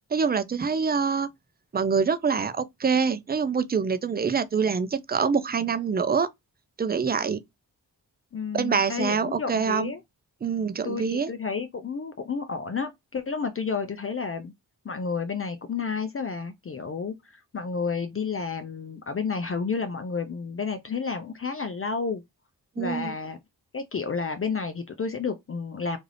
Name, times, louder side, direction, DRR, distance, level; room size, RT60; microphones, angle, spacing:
voice 1, 0.1-1.3 1.7-6.3 6.8-7.4 8.5-9.9 10.4-11.3 22.8-23.1, right 6 dB, 25° right, 0.4 m, -25 dB
voice 2, 8.3-10.0 10.8-14.5 14.8-22.2 22.8-23.4 23.7-26.0, left 5 dB, 35° left, 0.5 m, -31 dB
2.5 x 2.4 x 3.2 m
cardioid pair, 45°, 42 cm